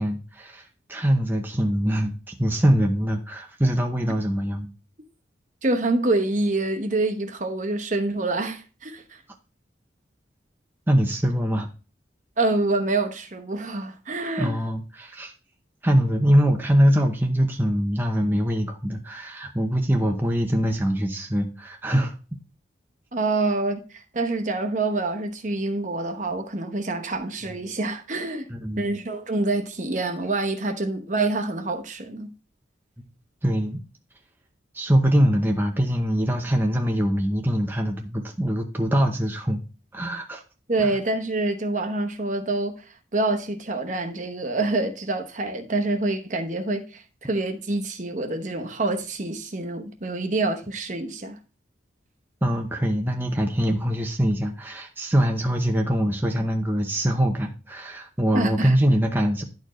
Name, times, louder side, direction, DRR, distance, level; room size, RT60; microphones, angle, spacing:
voice 1, 0.0-4.7 10.9-11.7 14.4-15.3 15.8-22.1 28.5-28.9 33.4-33.8 34.7-39.6 39.9-40.4 40.8-41.0 52.4-59.4, equal, 10° right, 0.8 m, -23 dB
voice 2, 5.6-9.2 12.4-14.5 23.1-28.5 28.8-32.3 40.7-42.8 43.1-51.4 58.3-58.7, right 2 dB, 40° right, 1.0 m, -26 dB
11.5 x 4.5 x 3.1 m
head